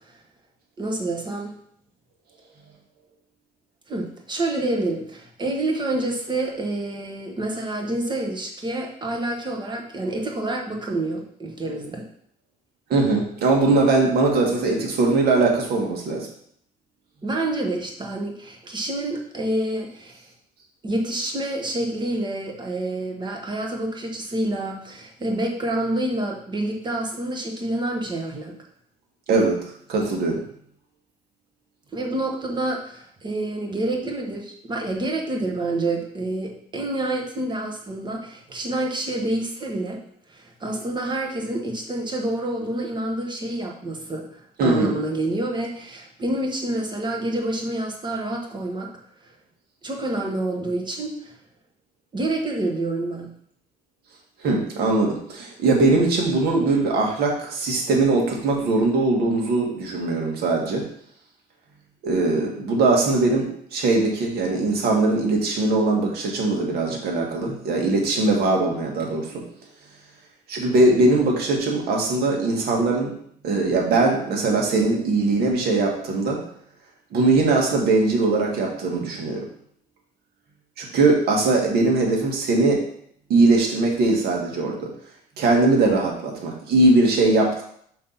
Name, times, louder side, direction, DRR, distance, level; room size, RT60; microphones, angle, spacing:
voice 1, 0.8-1.5 3.9-12.1 14.4-14.5 17.2-20.2 20.8-28.5 31.9-40.0 40.3-48.9 49.8-51.3 52.1-53.3, right 2 dB, 25° right, 1 dB, 1.4 m, -28 dB
voice 2, 12.9-16.3 29.3-29.6 29.9-30.4 44.6-45.0 54.4-60.9 62.0-69.4 70.5-73.1 73.4-76.4 77.1-79.5 80.8-82.8 83.3-84.9 85.4-87.6, right 3 dB, 70° right, 0 dB, 1.8 m, -21 dB
5.2 x 3.9 x 5.7 m, 0.66 s
cardioid pair, 110°, 17 cm